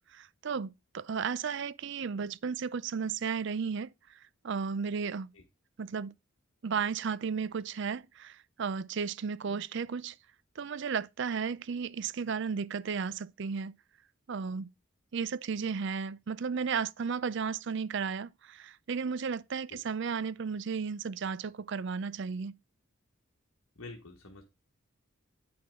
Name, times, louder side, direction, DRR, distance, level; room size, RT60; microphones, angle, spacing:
voice 1, 0.0-4.2 4.4-5.3 5.8-6.1 6.6-10.2 10.6-13.7 14.3-14.7 15.1-22.5, right 6 dB, 55° right, 0.4 m, -34 dB
voice 2, 23.8-24.4, left 2 dB, 80° left, 1.4 m, -47 dB
8.6 x 5.7 x 3.6 m
head